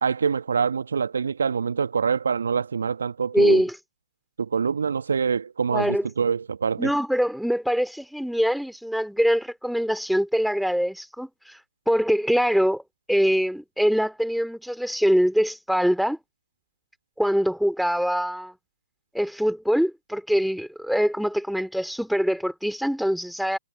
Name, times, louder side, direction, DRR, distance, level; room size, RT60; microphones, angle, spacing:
voice 1, 0.0-3.6 4.4-6.9, right 6 dB, 65° right, 1.4 m, -25 dB
voice 2, 3.3-3.7 5.7-6.1 6.8-11.6 11.9-12.8 13.1-16.2 17.2-18.5 19.1-23.6, equal, ahead, 2.6 m, -23 dB
figure-of-eight pair, 130°, 0 cm